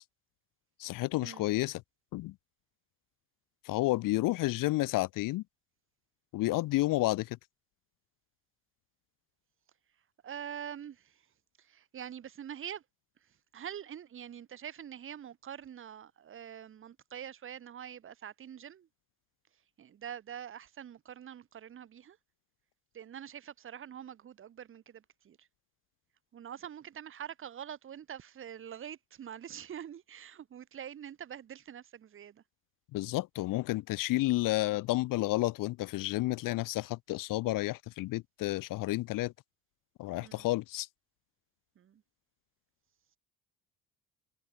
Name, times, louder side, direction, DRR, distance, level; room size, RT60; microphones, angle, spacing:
voice 1, 0.8-1.8 2.1-2.3 3.6-5.4 6.3-7.4 32.9-39.3 40.0-40.9, left 18 dB, 70° left, 1.4 m, -31 dB
voice 2, 10.2-11.3 11.6-12.8 13.5-18.9 19.8-22.2 22.9-25.5 26.3-32.4 40.2-40.6 41.8-42.0, right 9 dB, 35° right, 2.0 m, -45 dB
cardioid pair, 145°, 35 cm